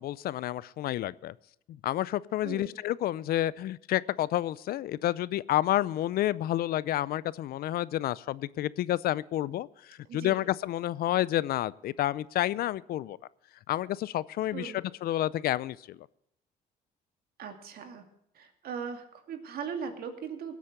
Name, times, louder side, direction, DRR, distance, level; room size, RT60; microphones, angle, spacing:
voice 1, 0.0-1.3 1.7-13.2 13.7-16.0, left 14 dB, 65° left, 21 dB, 0.5 m, -30 dB
voice 2, 2.4-2.8 10.1-10.4 14.5-14.9 17.4-18.0 18.3-20.5, right 6 dB, 60° right, 6 dB, 2.4 m, -39 dB
18.5 x 8.3 x 6.6 m, 0.75 s
cardioid pair, 110°, 17 cm